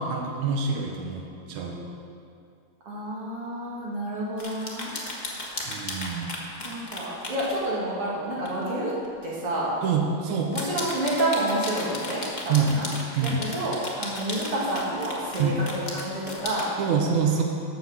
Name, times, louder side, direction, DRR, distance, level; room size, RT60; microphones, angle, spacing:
voice 1, 0.0-1.9 5.7-6.3 9.8-10.5 12.5-12.7 13.2-13.4 15.4-15.6 16.8-17.4, right 6 dB, 75° right, 1 dB, 2.5 m, -26 dB
voice 2, 2.9-4.9 6.6-8.9 9.2-9.7 10.5-12.9 13.2-16.7, right 1 dB, 50° right, -5 dB, 3.1 m, -29 dB
sound 1, 4.4-7.6 8.4-8.6 9.0-9.1 10.4-16.7, left 2 dB, 80° left, 0.4 m, -35 dB
12.0 x 6.5 x 7.2 m, 2.4 s
omnidirectional pair, 3.4 m